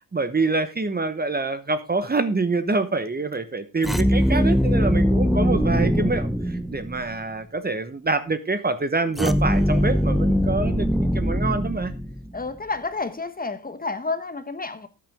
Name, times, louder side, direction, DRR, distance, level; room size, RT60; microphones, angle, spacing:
voice 1, 0.1-11.9, right 3 dB, 25° right, 1.1 m, -26 dB
sound 1, 3.8-7.1 9.2-12.4, equal, ahead, 0.8 m, -22 dB
voice 2, 12.3-14.9, left 3 dB, 20° left, 1.2 m, -30 dB
13.0 x 9.2 x 3.6 m
cardioid pair, 90°, 40 cm